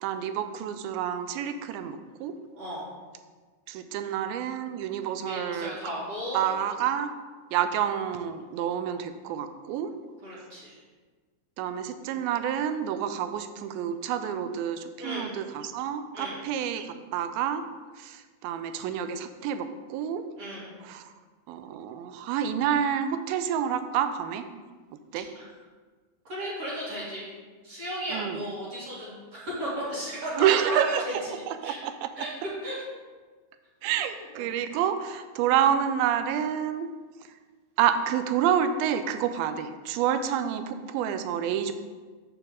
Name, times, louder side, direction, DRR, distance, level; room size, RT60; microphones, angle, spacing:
voice 1, 0.0-2.3 3.7-5.8 6.3-7.1 7.5-9.9 11.6-17.7 18.0-20.2 20.8-21.1 21.5-24.4 25.1-25.3 28.1-28.4 30.4-32.3 33.8-36.9 37.8-41.7, right 9 dB, 85° right, 9 dB, 2.4 m, -28 dB
voice 2, 5.2-6.5 10.2-10.8 15.0-15.3 16.1-16.4 20.4-20.7 25.3-25.4 26.2-27.3 27.6-31.8 32.2-32.3 32.6-32.8 34.1-34.5, equal, 45° right, -7 dB, 2.4 m, -35 dB
6.8 x 6.7 x 3.6 m, 1.4 s
omnidirectional pair, 4.3 m